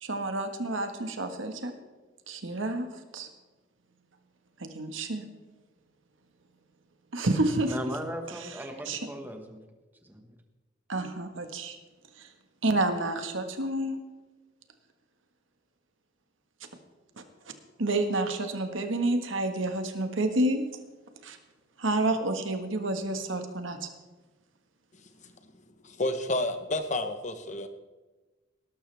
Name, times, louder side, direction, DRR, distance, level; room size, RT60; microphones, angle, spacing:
voice 1, 0.0-1.7 2.3-3.3 4.6-5.2 7.1-7.7 8.8-9.0 10.9-11.8 12.2-12.3 12.6-14.0 17.8-20.6 21.2-21.4 21.8-23.9, right 2 dB, 80° right, 6 dB, 1.5 m, -29 dB
voice 2, 7.7-9.6 10.0-10.3, right 1 dB, 10° right, 4 dB, 1.5 m, -37 dB
voice 3, 25.8-27.7, left 2 dB, 40° left, 8 dB, 1.0 m, -30 dB
19.0 x 12.0 x 3.4 m, 1.2 s
head